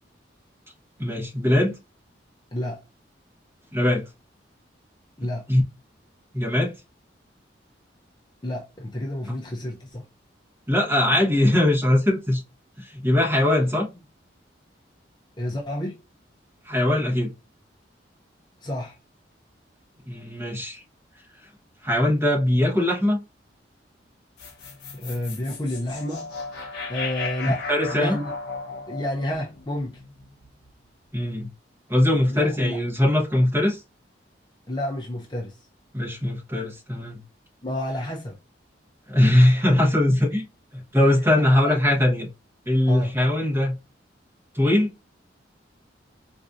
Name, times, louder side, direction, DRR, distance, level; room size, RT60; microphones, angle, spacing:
voice 1, 1.0-1.8 3.7-4.0 5.5-5.6 6.3-6.7 10.7-12.4 12.8-13.9 16.6-17.3 20.1-20.8 21.8-23.2 27.7-28.2 31.1-31.5 31.9-33.8 35.9-37.2 39.1-40.4 40.9-42.3 42.7-43.7 44.5-44.9, left 1 dB, 15° right, 1.0 m, -21 dB
voice 2, 8.4-10.0 15.4-16.0 18.6-19.0 24.9-26.3 26.9-27.6 27.9-28.3 28.9-30.0 32.3-32.9 34.7-35.6 37.6-38.4 41.4-41.8 42.9-43.1, left 1 dB, 25° left, 0.5 m, -30 dB
sound 1, 24.4-30.7, left 4 dB, 60° left, 0.9 m, -36 dB
4.0 x 2.6 x 2.4 m
head